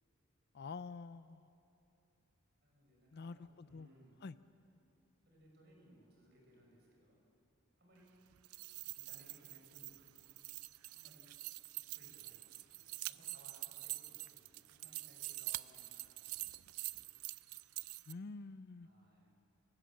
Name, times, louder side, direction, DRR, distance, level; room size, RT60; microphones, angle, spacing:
voice 1, 0.5-1.5 3.1-3.9 4.2-4.3 18.1-18.9, left 4 dB, 50° left, 15 dB, 0.5 m, -47 dB
voice 2, 2.6-4.2 5.2-7.2 7.8-8.1 8.4-8.5 8.9-11.3 11.6-17.1 18.8-19.3, equal, 50° right, -1 dB, 6.2 m, -66 dB
sound 1, 8.3-18.1, right 19 dB, 90° right, 0.5 m, -46 dB
29.5 x 16.5 x 7.7 m, 2.8 s
head